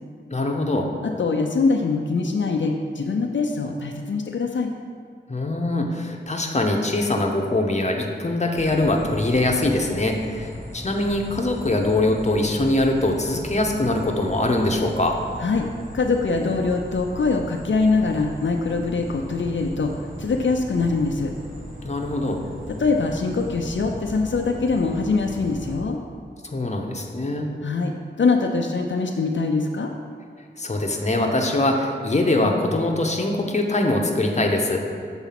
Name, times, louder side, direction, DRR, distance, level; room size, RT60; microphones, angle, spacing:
voice 1, 0.3-0.9 5.3-15.2 21.8-22.4 26.4-27.5 30.6-34.8, left 2 dB, 35° left, 2 dB, 0.8 m, -23 dB
voice 2, 1.0-4.7 15.4-15.7 15.9-19.9 20.2-21.3 22.8-26.0 27.6-29.9, left 4 dB, 80° left, 2 dB, 0.5 m, -23 dB
sound 1, 8.5-25.7, equal, 85° right, 1.9 m, -37 dB
7.1 x 4.0 x 5.8 m, 2.3 s
wide cardioid pair, 60°, 19 cm